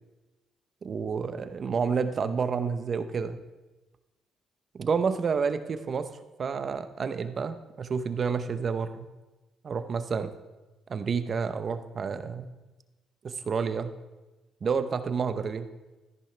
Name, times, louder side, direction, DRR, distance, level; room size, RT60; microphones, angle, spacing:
voice 1, 0.8-3.4 4.7-6.1 6.4-9.1 9.6-10.3 10.9-12.5 13.2-13.9 14.6-15.7, right 5 dB, 45° right, 11 dB, 0.8 m, -29 dB
14.0 x 10.5 x 3.3 m, 1.1 s
cardioid pair, 90°, 0 cm